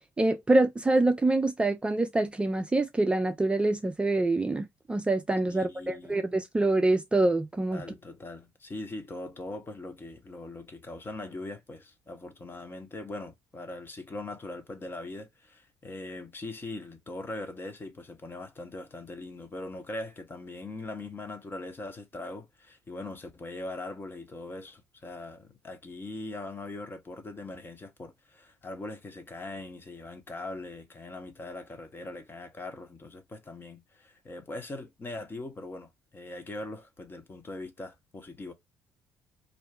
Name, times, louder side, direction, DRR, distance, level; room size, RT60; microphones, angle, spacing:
voice 1, 0.2-7.8, right 2 dB, 15° right, 0.4 m, -25 dB
voice 2, 5.5-6.2 7.7-38.5, left 2 dB, 25° left, 0.8 m, -41 dB
2.5 x 2.2 x 3.2 m
figure-of-eight pair, 50°, 8 cm